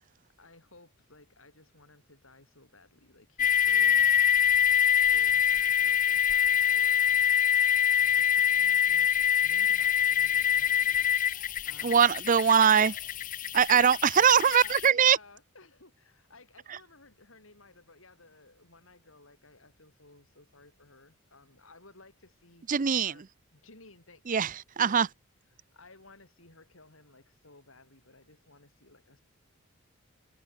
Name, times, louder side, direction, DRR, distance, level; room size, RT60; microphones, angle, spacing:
voice 1, 0.4-4.5 5.1-7.4 8.0-11.1 11.6-12.1 14.0-22.7 23.0-23.3 23.5-24.4 24.8-25.1 25.5-29.2, left 3 dB, 65° left, 6.4 m, -56 dB
sound 1, 3.4-14.9, left 9 dB, 40° left, 0.7 m, -25 dB
voice 2, 11.8-12.9 13.5-15.2 22.7-23.1 24.3-25.1, right 7 dB, 40° right, 0.5 m, -22 dB
head